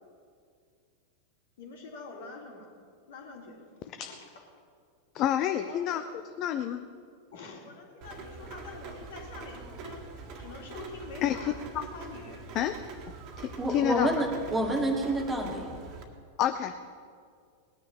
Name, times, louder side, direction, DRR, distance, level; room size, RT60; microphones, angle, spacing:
voice 1, 1.6-2.7 3.1-4.2 5.6-6.0 7.3-10.1 10.4-11.6 11.9-12.4, left 3 dB, 60° left, 0 dB, 3.1 m, -45 dB
voice 2, 5.1-6.0 6.4-6.8 11.2-11.8 12.5-12.8 13.4-14.1 16.4-17.0, left 10 dB, 35° left, 9 dB, 0.6 m, -29 dB
Rain, 8.0-16.0, right 4 dB, 40° right, 1.8 m, -44 dB
voice 3, 13.6-15.7, right 1 dB, 10° right, 1 dB, 2.1 m, -28 dB
19.0 x 9.7 x 5.5 m, 2.2 s
figure-of-eight pair, 90°, 0 cm